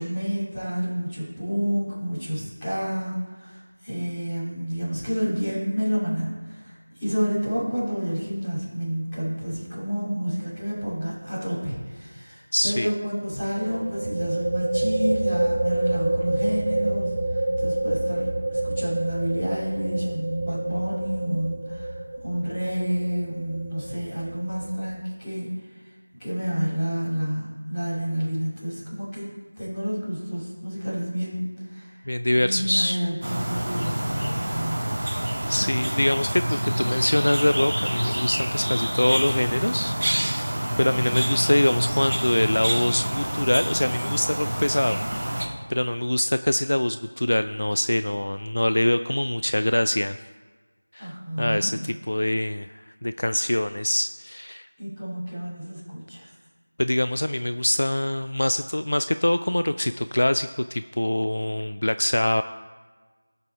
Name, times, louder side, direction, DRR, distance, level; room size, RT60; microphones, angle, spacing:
voice 1, 0.0-21.9 22.2-25.5 26.2-29.3 29.6-32.0 32.3-35.0 51.0-51.7 54.8-56.3, equal, 5° left, -17 dB, 3.2 m, -29 dB
sound 1, 10.4-10.7 11.0-11.1 13.5-24.9, right 2 dB, 20° right, 0.8 m, -28 dB
voice 2, 12.5-12.9 32.1-33.0 35.5-40.4 40.8-50.2 50.9-52.7 53.0-54.7 56.8-62.4, left 1 dB, 50° left, 10 dB, 0.3 m, -24 dB
sound 2, 33.2-45.5, right 1 dB, 35° right, 1.8 m, -27 dB
17.0 x 6.7 x 3.5 m, 1.4 s
figure-of-eight pair, 175°, 0 cm